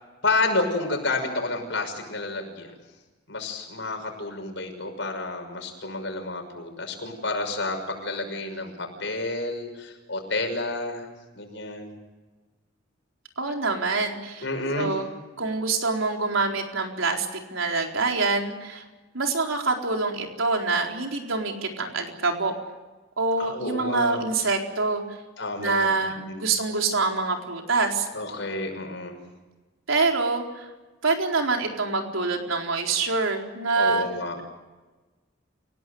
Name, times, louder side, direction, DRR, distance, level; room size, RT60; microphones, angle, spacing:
voice 1, 0.2-2.7 3.3-11.1 11.3-12.0 14.4-14.9 23.4-24.2 25.4-26.5 28.1-29.2 33.8-34.4, left 2 dB, 65° left, 4 dB, 6.1 m, -30 dB
voice 2, 13.4-14.4 14.8-15.1 15.4-18.8 19.1-22.5 23.2-25.0 25.6-28.1 29.9-30.6 31.0-34.1, right 3 dB, 85° right, 2 dB, 4.2 m, -25 dB
29.5 x 17.5 x 7.9 m, 1.2 s
head